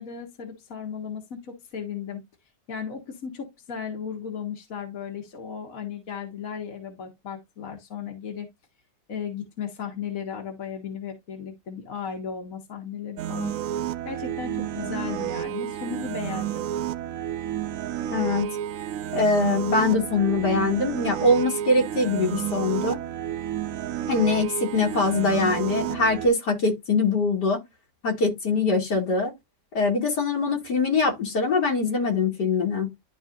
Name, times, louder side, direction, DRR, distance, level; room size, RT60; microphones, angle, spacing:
voice 1, 0.0-2.2 2.7-8.5 9.1-13.5 14.1-16.7, left 7 dB, 55° left, 2.0 m, -35 dB
sound 1, 13.2-26.3, right 11 dB, 65° right, 0.9 m, -31 dB
voice 2, 18.1-18.5 19.1-23.0 24.1-27.6 28.0-29.3 29.7-32.9, left 3 dB, 70° left, 2.6 m, -23 dB
12.0 x 4.2 x 2.5 m
omnidirectional pair, 1.8 m